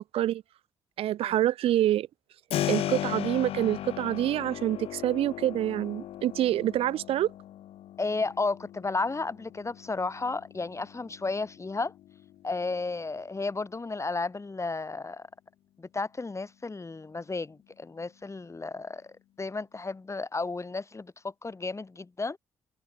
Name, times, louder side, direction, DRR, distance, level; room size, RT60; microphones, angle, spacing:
voice 1, 1.0-2.1 2.7-7.3, right 13 dB, 75° right, 1.7 m, -26 dB
Keyboard (musical), 2.5-13.2, left 12 dB, 75° left, 2.4 m, -37 dB
voice 2, 8.0-11.9 12.4-15.3 15.8-22.4, left 3 dB, 30° left, 4.5 m, -33 dB
supercardioid pair, 55°, 10 cm